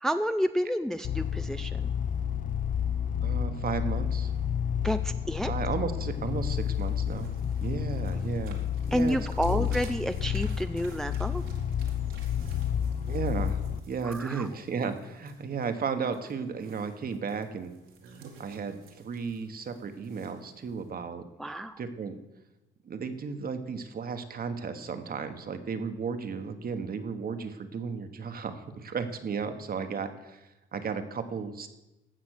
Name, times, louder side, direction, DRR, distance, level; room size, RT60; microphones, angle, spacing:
voice 1, 0.0-1.9 4.8-5.5 8.9-11.4 14.0-14.5 21.4-21.8, equal, ahead, 9 dB, 0.5 m, -30 dB
sound 1, 1.0-13.8, left 8 dB, 40° left, 0.7 m, -30 dB
voice 2, 3.2-4.3 5.4-7.4 7.6-8.6 8.9-9.2 9.4-9.7 13.1-13.6 13.9-17.7 18.4-21.2 21.8-22.1 22.8-31.7, right 5 dB, 50° right, 8 dB, 1.3 m, -34 dB
sound 2, 6.4-20.9, right 5 dB, 85° right, 2.3 m, -55 dB
15.5 x 5.9 x 6.5 m, 0.96 s
cardioid pair, 90°, 20 cm